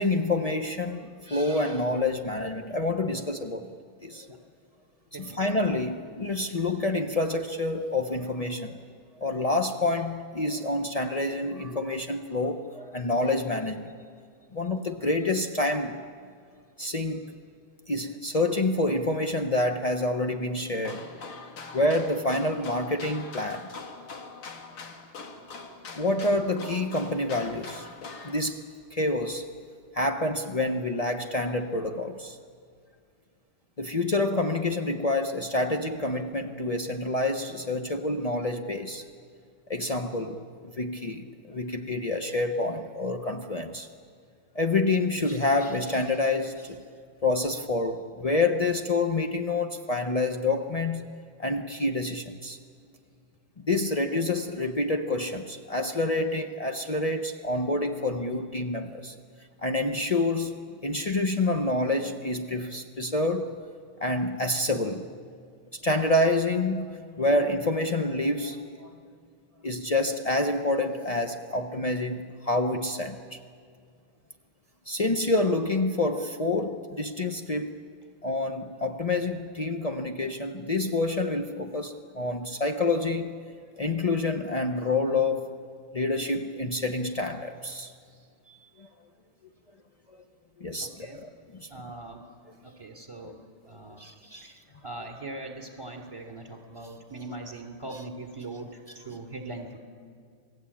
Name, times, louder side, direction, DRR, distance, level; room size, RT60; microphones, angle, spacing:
voice 1, 0.0-3.7 4.0-4.3 5.2-8.8 9.2-13.9 14.5-16.0 16.8-17.3 17.9-21.1 21.7-23.7 25.9-27.9 28.2-28.6 28.9-29.5 29.9-32.4 33.8-39.0 39.7-43.9 44.5-46.8 47.2-51.1 51.4-52.6 53.6-59.2 59.6-60.5 60.8-63.5 64.0-65.1 65.7-68.9 69.6-73.4 74.9-77.8 78.2-83.3 83.8-85.5 85.9-87.9 88.5-88.9 90.1-90.2 90.6-91.7 93.2-93.3 94.0-94.5, left 2 dB, 65° left, 5 dB, 0.3 m, -28 dB
sound 1, 20.7-28.4, left 4 dB, 80° left, 2.8 m, -43 dB
voice 2, 90.8-91.2 91.7-92.3 92.6-93.4 93.6-94.0 94.4-94.6 94.8-99.8, right 2 dB, 15° right, 2 dB, 2.9 m, -41 dB
28.5 x 20.0 x 8.7 m, 2.2 s
omnidirectional pair, 2.3 m